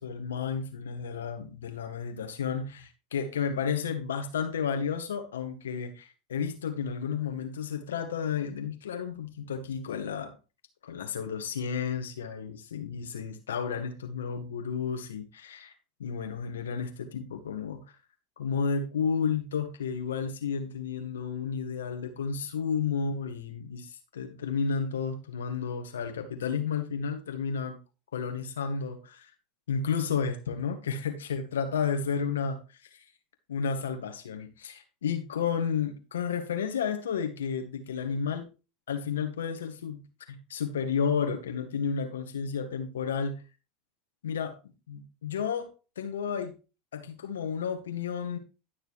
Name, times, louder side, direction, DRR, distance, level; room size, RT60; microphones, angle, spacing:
voice 1, 0.0-10.3 10.8-15.7 16.0-17.8 18.4-27.8 28.1-29.3 29.7-32.6 32.9-33.0 33.5-38.5 38.9-40.0 40.3-43.4 44.2-45.7 46.0-46.5 46.9-48.4, left 6 dB, 85° left, 1.6 m, -32 dB
11.5 x 6.6 x 3.1 m
hypercardioid pair, 90°, 0 cm